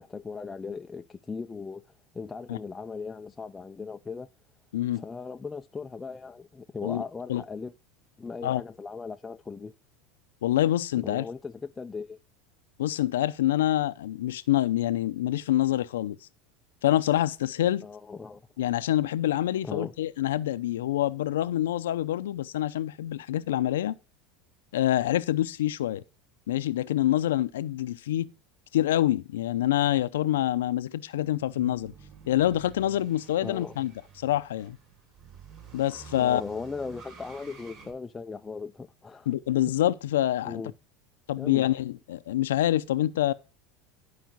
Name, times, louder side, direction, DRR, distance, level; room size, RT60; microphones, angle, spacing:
voice 1, 0.0-1.8 2.1-4.3 4.9-7.7 8.2-9.7 11.0-12.2 17.8-18.4 19.6-19.9 33.4-33.8 36.2-39.3 40.4-40.7 41.4-41.7, left 4 dB, 15° left, 0.5 m, -38 dB
voice 2, 4.7-5.0 6.8-7.0 7.3-7.4 8.4-8.6 10.4-11.2 12.8-16.2 16.8-17.9 18.6-24.0 24.7-26.0 26.5-28.3 28.7-31.9 32.3-33.9 34.2-34.8 35.7-36.4 39.3-40.6 41.3-43.3, left 13 dB, 90° left, 0.6 m, -26 dB
sound 1, 31.2-37.9, right 6 dB, 55° right, 5.6 m, -50 dB
12.0 x 5.0 x 6.0 m
supercardioid pair, 110°, 0 cm